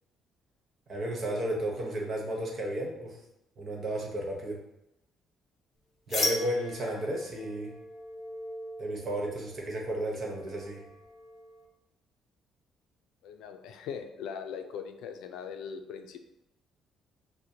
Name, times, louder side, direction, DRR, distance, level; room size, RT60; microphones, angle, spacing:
voice 1, 0.9-3.2 3.6-4.6 6.1-7.7 8.8-10.8, right 1 dB, 35° right, -1 dB, 1.1 m, -33 dB
sound 1, 6.1-11.7, left 2 dB, 30° left, 0.9 m, -38 dB
voice 2, 13.2-16.2, left 7 dB, 85° left, 6 dB, 0.4 m, -40 dB
6.4 x 2.2 x 2.9 m, 0.83 s
cardioid pair, 135°, 0 cm